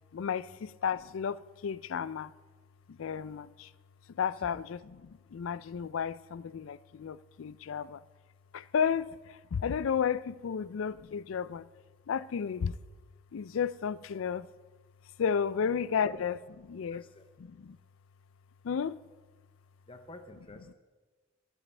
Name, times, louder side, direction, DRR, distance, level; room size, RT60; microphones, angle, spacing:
voice 1, 0.1-2.3 2.9-3.7 4.1-8.0 8.5-11.7 12.1-12.8 13.3-14.5 15.2-17.0 17.4-17.8 18.6-19.0, left 7 dB, 75° left, 0.4 m, -33 dB
voice 2, 16.9-17.3 19.9-20.7, left 2 dB, 25° left, 0.6 m, -49 dB
21.0 x 9.1 x 3.3 m
head